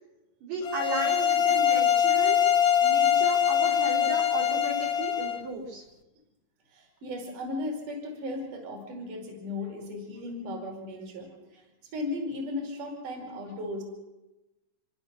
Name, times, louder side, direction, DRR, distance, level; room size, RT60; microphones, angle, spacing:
voice 1, 0.4-2.4 2.8-5.8, right 1 dB, 70° right, -2 dB, 6.7 m, -34 dB
sound 1, 0.6-5.4, left 9 dB, 85° left, 1.3 m, -23 dB
voice 2, 6.7-13.8, left 2 dB, 50° right, 3 dB, 6.2 m, -36 dB
27.5 x 24.0 x 6.7 m, 1.0 s
omnidirectional pair, 4.9 m